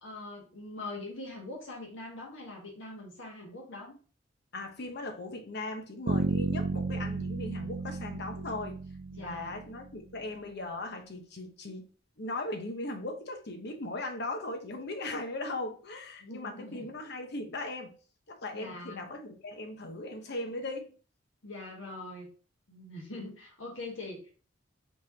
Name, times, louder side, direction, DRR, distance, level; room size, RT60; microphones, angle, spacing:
voice 1, 0.0-4.0 9.1-9.6 16.2-16.9 18.5-19.0 21.4-22.3 22.7-24.3, left 2 dB, 80° left, 1.6 m, -43 dB
voice 2, 4.5-8.8 9.2-11.9 12.2-17.9 18.3-20.9, left 2 dB, 60° left, 0.9 m, -38 dB
Bass guitar, 6.1-10.0, right 3 dB, 75° right, 0.6 m, -33 dB
5.4 x 3.2 x 2.8 m
head